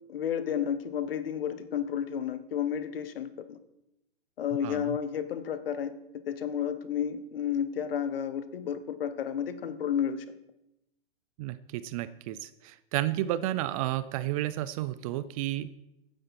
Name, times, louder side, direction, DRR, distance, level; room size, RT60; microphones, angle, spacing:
voice 1, 0.1-3.6 4.4-5.9 6.3-10.2, left 8 dB, 65° left, 12 dB, 1.3 m, -31 dB
voice 2, 4.6-5.0 11.4-15.7, right 14 dB, 35° right, 15 dB, 0.5 m, -32 dB
15.0 x 9.7 x 4.3 m, 0.87 s
hypercardioid pair, 120°, 31 cm